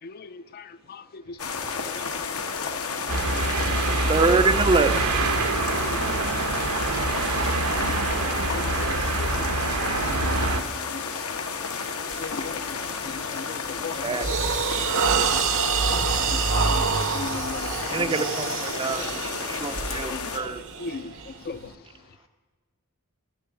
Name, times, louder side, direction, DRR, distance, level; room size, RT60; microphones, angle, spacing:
voice 1, 0.0-1.4 2.0-2.3 3.3-4.3 5.8-6.0 7.8-8.0 8.4-10.5 10.9-11.5 12.2-12.8 13.0-14.4 14.7-14.8 15.1-15.4 16.2-18.2 18.7-19.1 20.0-20.5 20.8-21.7, left 4 dB, 45° left, 0.4 m, -39 dB
sound 1, 1.4-20.4, left 5 dB, 80° left, 1.1 m, -32 dB
sound 2, 3.1-10.6, right 3 dB, 85° right, 1.1 m, -25 dB
voice 2, 4.1-4.9 14.0-14.3 17.9-20.6, right 4 dB, 25° right, 0.4 m, -25 dB
sound 3, 12.1-12.3 12.8-13.1 13.6-21.7, right 5 dB, 60° right, 0.8 m, -27 dB
voice 3, 21.6-22.3, left 6 dB, 60° left, 1.4 m, -55 dB
12.5 x 6.9 x 9.7 m
head